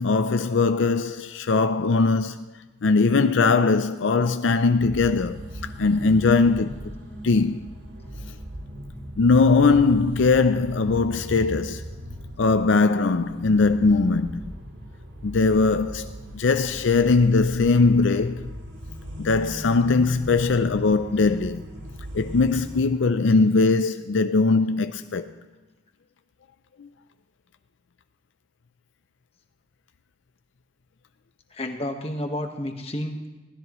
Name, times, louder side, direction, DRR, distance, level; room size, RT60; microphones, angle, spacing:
voice 1, 0.0-2.5 2.8-6.7 7.2-7.6 9.2-11.8 12.4-14.4 15.2-18.5 19.2-21.6 22.1-25.3 26.8-26.9, left 4 dB, 80° left, 0.5 m, -20 dB
sound 1, 4.8-22.8, equal, 75° right, 2.8 m, -38 dB
voice 2, 31.5-33.3, left 1 dB, 30° left, 1.4 m, -31 dB
23.0 x 16.5 x 3.1 m
head